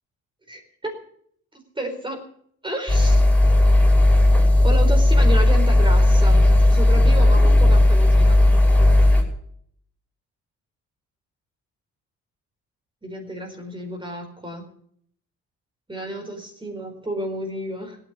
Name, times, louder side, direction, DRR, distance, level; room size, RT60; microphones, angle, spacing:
voice 1, 0.5-1.0 1.7-2.2 2.6-3.2 4.6-8.4 13.0-14.7 15.9-18.0, right 1 dB, 15° right, 3 dB, 4.3 m, -31 dB
sound 1, 2.9-9.2, left 1 dB, 5° left, 5.6 m, -15 dB
16.5 x 9.9 x 8.3 m, 0.64 s
cardioid pair, 90°, 30 cm